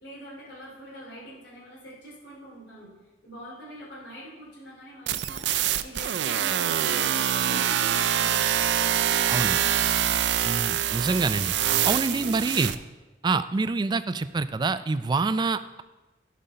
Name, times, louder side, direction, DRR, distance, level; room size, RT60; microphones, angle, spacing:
voice 1, 0.0-2.9 3.2-5.5 5.8-9.8 12.1-12.5, right 1 dB, 85° left, -5 dB, 2.8 m, -44 dB
sound 1, 5.1-12.8, right 10 dB, 90° right, 0.4 m, -25 dB
voice 2, 10.4-11.5 11.8-12.7 13.2-15.8, right 3 dB, 25° right, 13 dB, 0.3 m, -26 dB
11.0 x 5.1 x 5.6 m, 1.1 s
head